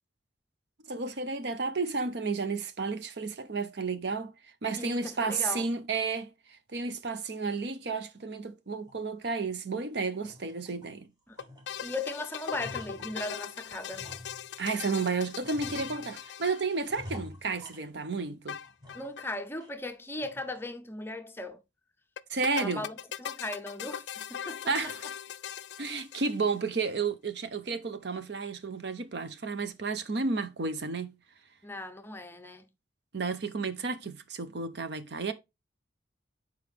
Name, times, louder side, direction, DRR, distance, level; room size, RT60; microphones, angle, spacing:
voice 1, 0.9-4.3 4.6-11.1 14.6-18.6 22.3-22.8 24.7-25.0 25.8-31.1 33.1-35.3, right 4 dB, 60° right, 0.7 m, -32 dB
voice 2, 4.8-5.7 11.3-11.4 11.8-14.1 18.9-21.6 22.5-24.7 31.6-32.7, left 2 dB, 10° left, 0.5 m, -38 dB
sound 1, 8.9-9.0 9.5-9.6 10.1-11.0 11.3-12.0 12.3-14.9 15.4-16.3 16.8-18.3 18.6-19.3 19.6-19.7 20.2-20.6, left 1 dB, 20° right, 1.2 m, -48 dB
sound 2, 11.4-17.2 18.5-19.3 19.6-19.7 19.9-20.0 22.2-26.7, left 9 dB, 65° left, 0.3 m, -40 dB
6.7 x 4.8 x 3.4 m
head